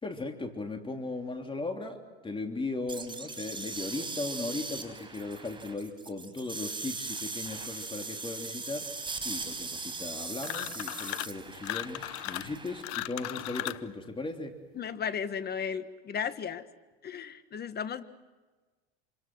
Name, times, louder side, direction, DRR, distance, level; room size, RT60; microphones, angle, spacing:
voice 1, 0.0-14.6, left 3 dB, 15° left, 4 dB, 3.3 m, -37 dB
sound 1, 2.9-12.8, right 4 dB, 15° right, 4.5 m, -39 dB
sound 2, 10.4-11.4 11.6-13.9, left 18 dB, 60° left, 1.0 m, -36 dB
voice 2, 14.8-16.6 17.0-18.0, left 7 dB, 35° left, 12 dB, 1.7 m, -35 dB
28.5 x 26.0 x 6.2 m, 1.3 s
hypercardioid pair, 95°, 30 cm